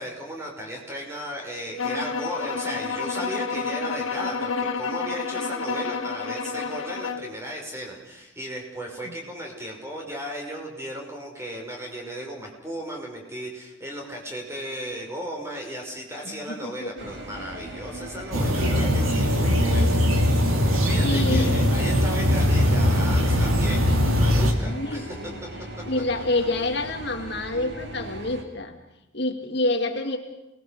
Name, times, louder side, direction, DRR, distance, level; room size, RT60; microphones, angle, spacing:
voice 1, 0.0-20.0 20.8-23.9 24.2-25.1, equal, 15° right, 0 dB, 5.5 m, -35 dB
sound 1, 1.8-7.3, left 5 dB, 75° left, 1.9 m, -29 dB
voice 2, 16.2-17.5 18.6-18.8 19.2-19.9 20.7-21.9 24.7-25.4 25.9-28.8 29.1-30.2, left 2 dB, 55° left, 4 dB, 2.2 m, -29 dB
sound 2, 17.0-28.4, right 1 dB, 55° right, 3.5 m, -39 dB
sound 3, 18.3-24.5, equal, 90° right, 3.5 m, -21 dB
29.0 x 20.5 x 6.7 m, 0.93 s
head